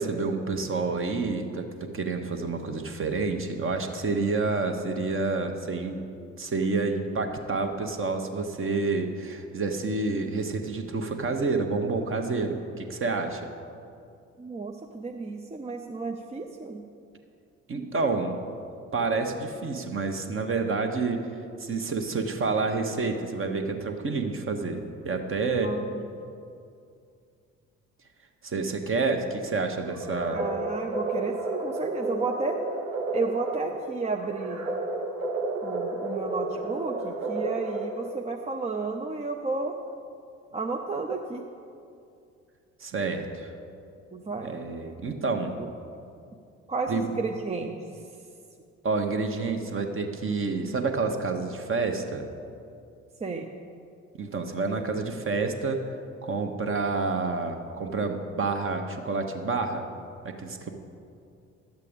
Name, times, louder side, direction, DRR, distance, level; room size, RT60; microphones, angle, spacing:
voice 1, 0.0-6.0 6.4-13.4 17.7-18.4 18.9-21.2 21.6-24.8 25.0-25.7 28.4-30.5 42.8-43.5 44.4-45.5 46.9-47.1 48.8-52.3 54.2-55.9 56.2-59.9 60.2-60.7, right 3 dB, 30° right, 5 dB, 1.1 m, -28 dB
voice 2, 14.4-16.8 25.6-26.1 30.3-32.6 33.1-34.6 35.6-39.7 40.5-41.4 44.1-44.6 45.5-45.7 46.7-47.8 53.2-53.5, right 3 dB, 15° right, 2 dB, 0.6 m, -32 dB
sound 1, 29.9-38.3, right 2 dB, 85° right, 0.7 m, -32 dB
11.5 x 8.2 x 5.1 m, 2.5 s
figure-of-eight pair, 45°, 39 cm